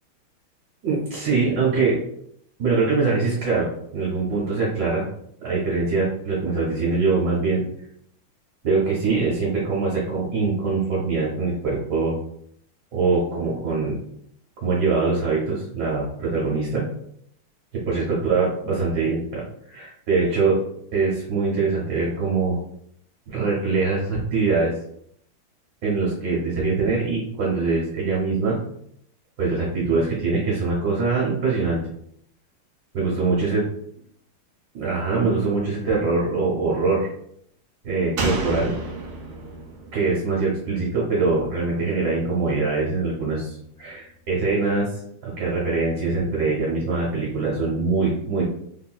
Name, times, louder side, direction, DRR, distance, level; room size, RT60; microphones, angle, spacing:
voice 1, 0.8-2.0 2.6-5.1 5.4-7.6 8.6-12.2 12.9-14.0 14.6-16.9 17.7-20.6 20.9-22.6 23.3-24.7 25.8-28.6 29.4-31.8 32.9-33.6 34.7-37.1 37.8-38.7 39.9-48.4, right 4 dB, 65° right, -5 dB, 1.4 m, -23 dB
Slam, 38.2-41.6 41.9-42.0, right 2 dB, 85° right, 1.5 m, -31 dB
3.5 x 2.7 x 2.3 m, 0.69 s
omnidirectional pair, 2.3 m